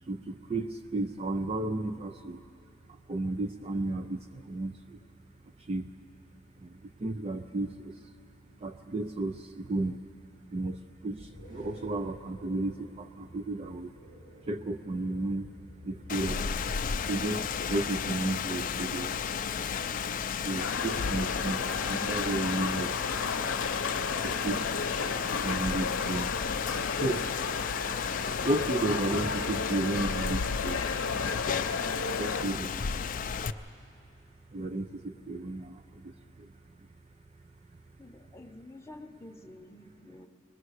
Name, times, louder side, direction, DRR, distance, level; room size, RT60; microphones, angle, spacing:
voice 1, 0.0-2.4 2.9-5.0 5.6-5.9 6.6-8.1 8.6-10.0 10.5-13.9 14.4-15.5 15.8-16.5 17.0-19.2 20.4-23.4 24.2-24.7 25.4-26.3 26.9-27.3 28.4-30.9 32.2-33.0 34.5-36.5, right 2 dB, 30° right, 8 dB, 0.4 m, -33 dB
sound 1, 11.2-17.4, left 1 dB, 75° right, 5.1 m, -50 dB
Rain, 16.1-33.5, left 6 dB, 40° left, 0.4 m, -33 dB
sound 2, 20.6-32.4, left 5 dB, 75° left, 0.7 m, -34 dB
voice 2, 38.0-40.3, left 1 dB, 15° left, 3 dB, 0.8 m, -49 dB
21.5 x 21.0 x 6.4 m, 2.7 s
head